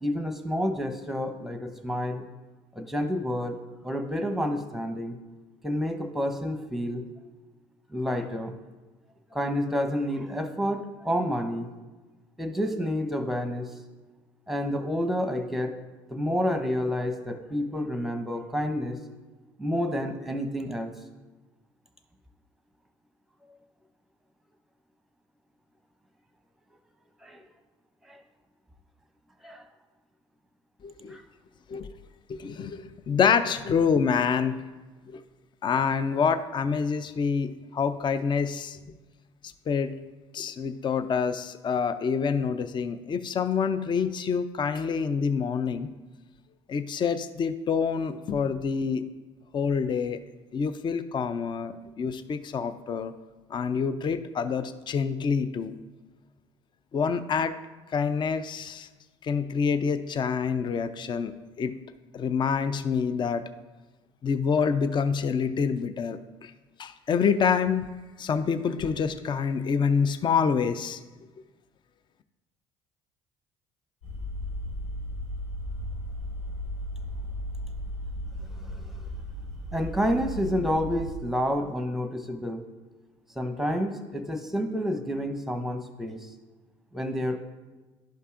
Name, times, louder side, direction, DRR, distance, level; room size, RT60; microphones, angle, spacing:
voice 1, 0.0-2.2 2.8-3.6 3.8-5.2 5.6-7.1 7.9-8.5 9.3-11.7 12.4-13.7 14.5-15.7 16.1-19.0 19.6-20.9 27.2-27.4 28.1-28.2 29.4-29.6 31.1-31.2 78.7-78.8 79.7-82.6 83.4-86.3 86.9-87.4, equal, ahead, 5 dB, 1.0 m, -29 dB
voice 2, 30.8-31.2 31.7-31.9 32.3-34.6 35.1-35.2 35.6-38.8 39.7-40.0 40.3-45.9 46.7-49.0 49.5-50.2 50.5-53.1 53.5-55.7 56.9-57.5 57.9-58.9 59.2-61.3 61.6-61.8 62.1-63.4 64.2-66.5 66.8-67.9 68.2-71.0, left 6 dB, 30° left, 12 dB, 0.5 m, -27 dB
sound 1, 74.0-81.1, left 1 dB, 85° left, 2.1 m, -35 dB
11.5 x 5.4 x 2.5 m, 1.2 s
hypercardioid pair, 55°, 14 cm